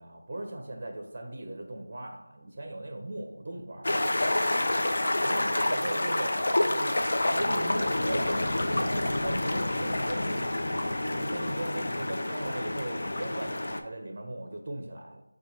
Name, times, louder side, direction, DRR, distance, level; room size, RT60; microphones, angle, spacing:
voice 1, 0.0-4.4 5.2-6.3 6.7-8.3 8.8-15.2, right 1 dB, 30° right, 2 dB, 0.5 m, -38 dB
sound 1, 3.8-13.8, left 1 dB, 50° left, 0.4 m, -28 dB
4.1 x 2.2 x 4.4 m, 0.91 s
figure-of-eight pair, 175°, 0 cm